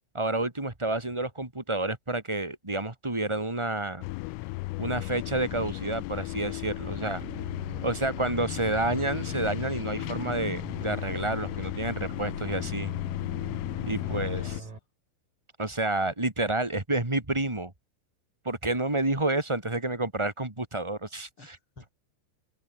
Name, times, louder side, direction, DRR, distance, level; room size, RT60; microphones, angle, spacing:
voice 1, 0.1-4.0 4.8-7.2 7.8-12.9 13.8-14.4 15.6-17.7 18.4-21.5, right 2 dB, 20° right, 0.8 m, -29 dB
sound 1, 4.0-14.6, left 22 dB, 90° left, 3.3 m, -35 dB
voice 2, 6.7-7.5 13.9-14.8 21.4-21.9, left 3 dB, 25° left, 6.8 m, -54 dB
sound 2, 7.2-14.8, right 4 dB, 35° right, 7.4 m, -42 dB
open air
omnidirectional pair, 5.7 m